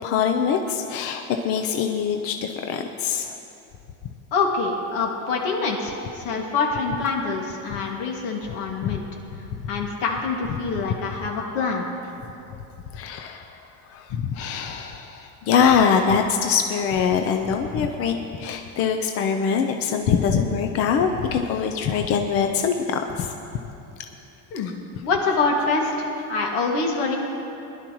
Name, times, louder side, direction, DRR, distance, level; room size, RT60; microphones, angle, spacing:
voice 1, 0.0-3.3 8.8-9.0 12.9-13.4 13.9-23.3, left 6 dB, 40° left, 5 dB, 0.6 m, -23 dB
voice 2, 4.3-9.0 9.7-11.9 24.5-24.7 25.0-25.9 26.3-27.2, left 4 dB, 80° left, 0 dB, 2.3 m, -25 dB
20.0 x 11.5 x 3.1 m, 2.9 s
cardioid pair, 160°, 36 cm